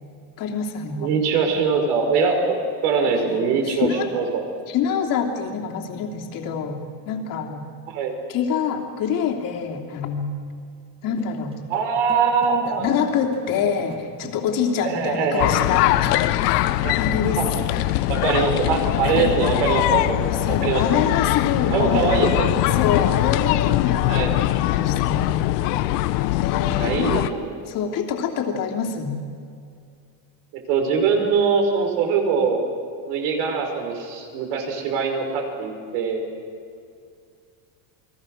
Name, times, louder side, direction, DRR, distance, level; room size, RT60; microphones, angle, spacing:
voice 1, 0.4-1.1 3.1-4.1 4.7-7.7 8.3-10.3 11.0-11.6 12.7-17.4 17.7-18.1 19.0-19.3 20.2-22.3 22.5-25.6 25.8-26.0 26.4-27.3 27.7-29.2, left 7 dB, 45° left, 2 dB, 3.0 m, -26 dB
voice 2, 1.0-2.6 2.8-4.4 7.9-8.1 11.7-12.9 14.8-15.7 16.8-17.0 17.4-17.5 18.1-20.8 21.7-22.6 24.1-24.4 26.7-27.6 30.5-32.6 33.1-36.2, right 5 dB, 75° right, 3 dB, 5.4 m, -22 dB
sound 1, 11.1-18.0, right 1 dB, 10° right, 1.9 m, -41 dB
sound 2, 15.4-27.3, left 16 dB, 85° left, 1.0 m, -22 dB
30.0 x 21.5 x 6.5 m, 2.4 s
cardioid pair, 165°, 46 cm